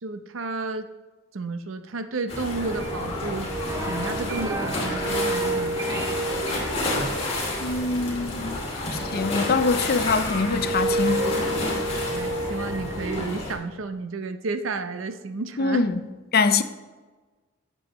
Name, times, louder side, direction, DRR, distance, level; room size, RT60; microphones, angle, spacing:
voice 1, 0.0-0.9 1.3-3.5 3.8-6.4 12.0-15.8, right 3 dB, 70° right, 0.7 m, -32 dB
sound 1, 2.3-13.5, left 2 dB, 30° left, 2.5 m, -30 dB
sound 2, 2.6-8.4 8.9-13.2, right 2 dB, 15° right, 0.4 m, -31 dB
voice 2, 7.6-8.6 8.9-11.5 12.3-12.4 15.6-16.0 16.3-16.6, left 4 dB, 50° left, 0.5 m, -24 dB
12.5 x 7.7 x 3.0 m
head